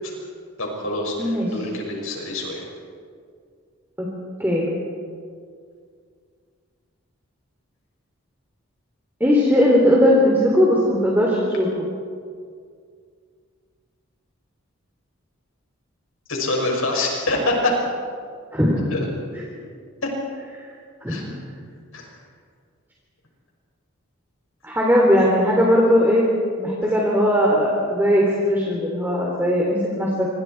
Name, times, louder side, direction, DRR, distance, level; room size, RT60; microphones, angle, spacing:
voice 1, 0.6-2.6 16.3-17.7 18.8-19.0 21.1-21.2 21.9-22.0 26.8-26.9, left 2 dB, 70° left, 0 dB, 6.1 m, -25 dB
voice 2, 1.2-1.5 4.0-4.1 4.4-4.7 9.2-11.7 18.5-18.8 21.0-21.2 24.6-26.2 26.6-30.3, equal, 10° right, -3 dB, 3.2 m, -18 dB
27.0 x 25.5 x 4.6 m, 2.1 s
head